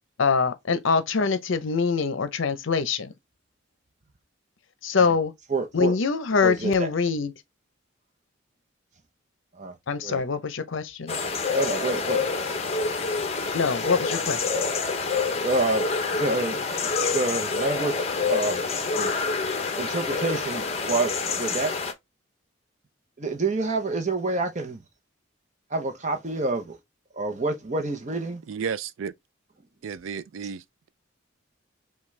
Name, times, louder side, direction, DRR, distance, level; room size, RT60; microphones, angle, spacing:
voice 1, 0.2-3.1 4.8-5.3 5.7-7.3 9.9-11.2 13.5-14.7, left 5 dB, 70° left, 0.6 m, -24 dB
voice 2, 5.5-5.9 6.4-6.9 9.6-9.8 10.0-10.2 11.5-12.3 15.4-16.6 16.8-17.9 18.2-18.6 18.9-19.1 19.8-21.7 23.2-24.8 25.7-26.8 27.2-28.4, right 3 dB, 35° right, 0.7 m, -28 dB
sound 1, 11.1-21.9, left 4 dB, 30° left, 0.7 m, -27 dB
voice 3, 28.5-29.1 29.8-30.6, right 6 dB, 75° right, 0.4 m, -32 dB
5.8 x 2.3 x 3.2 m
head